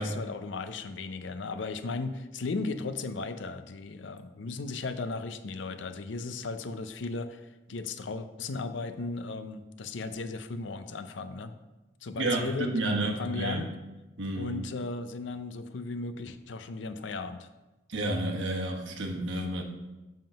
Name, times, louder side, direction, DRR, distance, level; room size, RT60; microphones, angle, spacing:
voice 1, 0.0-11.6 12.0-12.7 13.2-13.7 14.4-17.5, left 3 dB, 70° left, 10 dB, 0.5 m, -36 dB
voice 2, 12.2-13.6 14.2-14.6 17.9-19.6, right 2 dB, 75° right, 1 dB, 1.1 m, -30 dB
7.5 x 3.7 x 5.7 m, 1.1 s
head